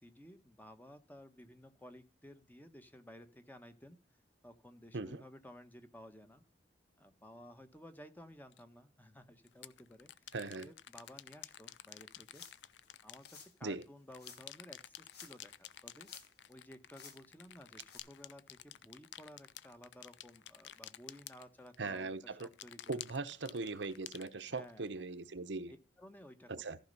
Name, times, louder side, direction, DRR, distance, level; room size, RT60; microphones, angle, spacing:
voice 1, 0.0-4.0 4.4-6.4 7.0-12.4 13.0-16.1 16.5-23.0 24.5-24.9 25.7-26.5, left 1 dB, 10° left, 1.1 m, -55 dB
sound 1, 8.5-8.6 9.5-13.8 14.1-22.0 22.4-24.9, left 12 dB, 80° left, 0.5 m, -51 dB
voice 2, 10.3-10.7 13.6-13.8 21.8-22.5 22.9-25.7 26.5-26.8, right 3 dB, 80° right, 0.9 m, -40 dB
sound 2, 12.3-12.7 13.2-13.5 14.2-14.4 15.0-15.5 15.8-16.5 16.9-17.2 17.9-18.0, left 6 dB, 60° left, 2.5 m, -55 dB
14.5 x 5.4 x 5.3 m
head